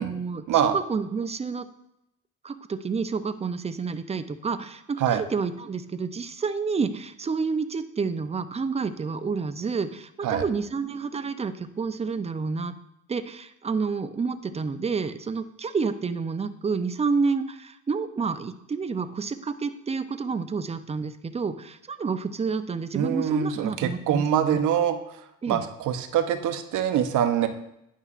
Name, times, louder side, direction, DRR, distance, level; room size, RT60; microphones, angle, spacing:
voice 1, 0.0-1.7 2.4-12.7 13.1-24.6 25.4-25.7, right 5 dB, 20° right, 10 dB, 0.5 m, -29 dB
voice 2, 22.9-25.0 25.5-27.5, right 9 dB, 80° right, 8 dB, 0.7 m, -24 dB
9.9 x 5.6 x 2.5 m, 0.81 s
cardioid pair, 90°, 30 cm